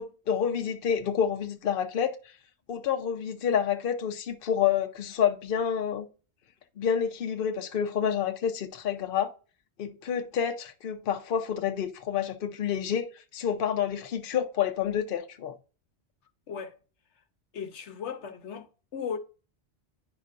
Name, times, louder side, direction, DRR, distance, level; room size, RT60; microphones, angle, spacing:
voice 1, 0.0-2.2 2.7-6.1 6.8-9.3 9.8-15.5, left 8 dB, 55° left, 0.9 m, -28 dB
voice 2, 17.5-19.2, left 6 dB, 80° left, 1.1 m, -36 dB
9.5 x 5.5 x 2.5 m
omnidirectional pair, 1.2 m